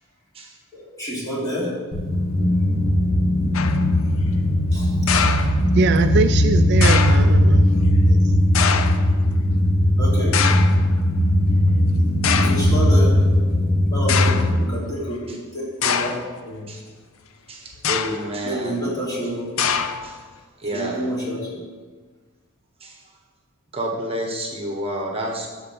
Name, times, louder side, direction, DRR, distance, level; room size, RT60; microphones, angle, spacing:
voice 1, 0.7-1.9 3.3-3.6 4.7-5.0 10.0-10.5 12.4-13.2 13.9-16.6 18.4-19.6 20.7-21.5, equal, 20° left, -6 dB, 3.0 m, -28 dB
sound 1, 1.9-14.6, left 1 dB, 45° left, 1.8 m, -18 dB
sound 2, 3.5-3.9 5.1-6.0 6.8-7.3 8.5-9.1 10.3-10.9 11.7-11.8 12.2-12.7 13.5-13.6 14.1-14.6 15.8-16.3 17.7-18.3 19.6-20.2, left 7 dB, 70° left, 0.6 m, -24 dB
voice 2, 5.7-7.7 8.1-8.2, right 4 dB, 55° right, 9 dB, 0.4 m, -22 dB
voice 3, 17.5-18.8 20.0-20.2 20.6-21.2 22.8-23.0 23.7-25.5, right 1 dB, 30° right, 0 dB, 1.3 m, -29 dB
12.5 x 4.6 x 7.4 m, 1.4 s
head